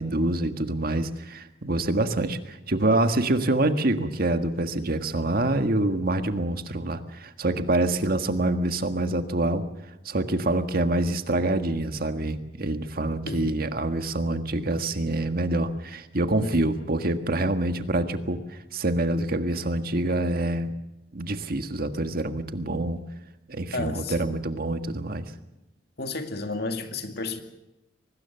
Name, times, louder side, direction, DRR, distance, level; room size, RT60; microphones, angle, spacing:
voice 1, 0.0-9.6 10.0-20.7 21.1-23.0 23.5-25.3, right 2 dB, 55° right, 8 dB, 1.6 m, -26 dB
voice 2, 23.7-24.4 26.0-27.4, left 3 dB, 60° left, 6 dB, 2.4 m, -32 dB
24.0 x 20.0 x 6.9 m, 0.95 s
head